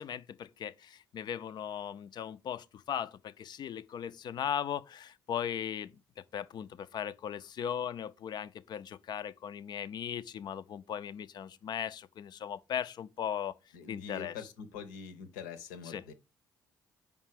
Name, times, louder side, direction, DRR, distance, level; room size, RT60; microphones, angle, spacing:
voice 1, 0.0-13.5 13.9-14.4 15.8-16.0, left 9 dB, 45° left, 0.5 m, -38 dB
voice 2, 13.7-16.1, left 6 dB, 70° left, 0.8 m, -44 dB
5.3 x 4.8 x 4.9 m
figure-of-eight pair, 45°, 10 cm